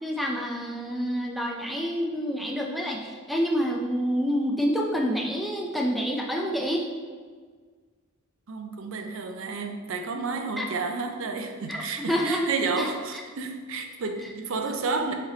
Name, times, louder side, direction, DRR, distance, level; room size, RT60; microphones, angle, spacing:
voice 1, 0.0-6.9 10.6-10.7 11.7-12.5 12.8-13.2 14.7-14.8, equal, ahead, -1 dB, 0.4 m, -28 dB
voice 2, 8.5-15.1, right 4 dB, 65° right, 5 dB, 0.5 m, -31 dB
4.0 x 3.2 x 3.9 m, 1.6 s
head